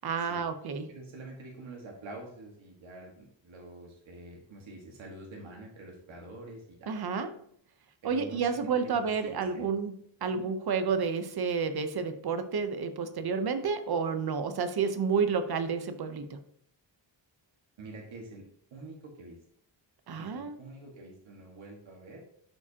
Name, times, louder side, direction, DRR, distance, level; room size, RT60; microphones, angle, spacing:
voice 1, 0.0-0.9 6.9-7.3 8.0-16.4 20.1-20.6, right 5 dB, 55° right, 9 dB, 0.8 m, -30 dB
voice 2, 0.9-6.9 8.0-8.5 8.8-9.7 10.3-10.5 17.8-19.4 20.1-22.2, right 2 dB, 85° right, 0 dB, 1.6 m, -47 dB
11.5 x 4.9 x 2.8 m, 0.67 s
wide cardioid pair, 175°, 46 cm